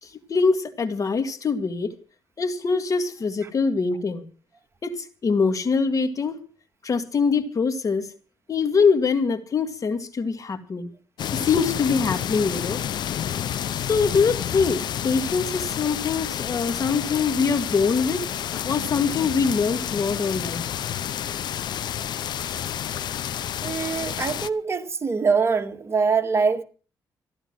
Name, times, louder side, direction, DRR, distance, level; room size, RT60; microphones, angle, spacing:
voice 1, 0.0-1.9 2.4-4.3 4.8-6.4 6.8-8.1 8.5-10.9 11.3-12.8 13.7-18.3 18.6-20.7, left 5 dB, 45° left, 2.1 m, -23 dB
sound 1, 11.2-24.5, left 10 dB, 70° left, 0.8 m, -29 dB
voice 2, 23.6-26.6, right 5 dB, 35° right, 2.0 m, -23 dB
15.0 x 12.0 x 6.1 m
cardioid pair, 80°, 8 cm